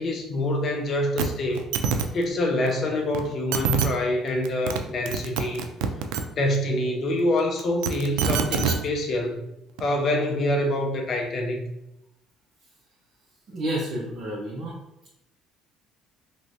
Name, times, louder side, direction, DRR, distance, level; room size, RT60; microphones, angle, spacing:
voice 1, 0.0-1.7 2.1-5.6 6.4-9.4 9.8-11.7, left 1 dB, 40° left, 2 dB, 0.6 m, -26 dB
sound 1, 1.2-1.3 1.5-2.0 3.1-3.2 3.5-3.9 4.5-4.8 5.1-6.2 7.6-8.8 9.8-9.9, right 6 dB, 90° right, 0.3 m, -25 dB
voice 2, 13.5-14.7, right 1 dB, 45° right, -5 dB, 0.8 m, -30 dB
3.1 x 3.0 x 2.7 m, 0.84 s
cardioid pair, 125°, 0 cm